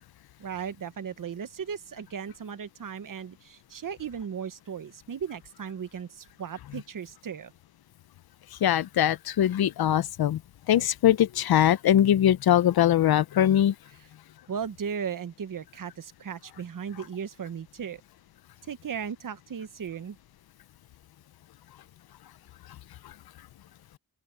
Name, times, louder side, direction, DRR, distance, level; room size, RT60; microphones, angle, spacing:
voice 1, 0.4-7.5 14.5-18.0 18.7-20.2, right 7 dB, 60° right, 1.2 m, -36 dB
voice 2, 8.6-10.4 10.7-13.7, left 11 dB, 75° left, 0.7 m, -22 dB
open air
cardioid pair, 80°, 37 cm